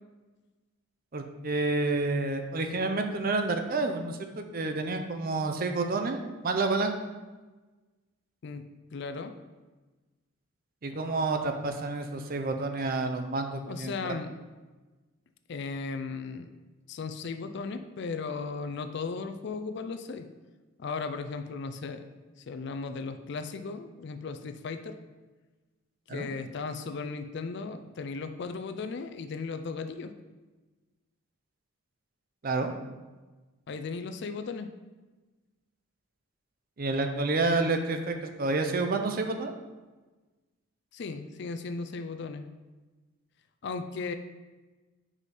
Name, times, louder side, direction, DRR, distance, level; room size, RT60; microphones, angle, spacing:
voice 1, 1.1-6.9 10.8-14.1 26.1-26.3 32.4-32.7 36.8-39.5, right 3 dB, 45° right, 6 dB, 0.5 m, -29 dB
voice 2, 8.9-9.3 10.9-11.0 13.7-14.3 15.5-16.5 16.9-20.3 20.8-22.0 22.5-25.0 26.1-30.1 33.7-34.7 40.9-42.5 43.6-44.1, left 4 dB, 55° left, 9 dB, 0.4 m, -36 dB
4.9 x 4.9 x 4.2 m, 1.2 s
head